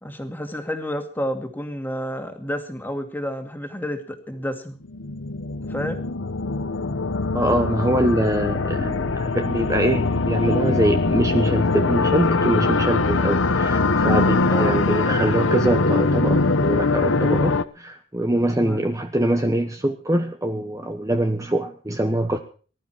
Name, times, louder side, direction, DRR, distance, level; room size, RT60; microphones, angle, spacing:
voice 1, 0.0-4.8 5.6-6.0 14.4-14.8 15.1-15.2 18.6-18.8, equal, 10° left, 6 dB, 2.2 m, -30 dB
sound 1, 4.8-17.6, left 3 dB, 80° left, 1.0 m, -22 dB
voice 2, 7.3-22.4, right 1 dB, 15° right, 6 dB, 1.1 m, -23 dB
19.5 x 12.5 x 4.4 m, 0.39 s
head